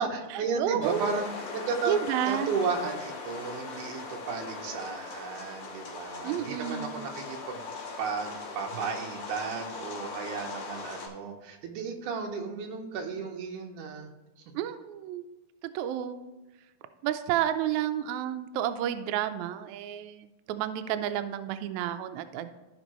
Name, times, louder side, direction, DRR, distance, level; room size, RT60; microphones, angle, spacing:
voice 1, 0.0-2.0 2.3-7.7 8.0-14.1, right 5 dB, 70° right, 3 dB, 2.4 m, -34 dB
voice 2, 0.5-1.2 1.9-2.5 6.2-7.0 14.5-15.2 15.7-16.2 17.0-22.5, right 11 dB, 90° right, 9 dB, 1.6 m, -31 dB
sound 1, 0.8-11.1, left 4 dB, 60° left, 2.5 m, -40 dB
14.5 x 5.3 x 3.0 m, 1.1 s
omnidirectional pair, 3.9 m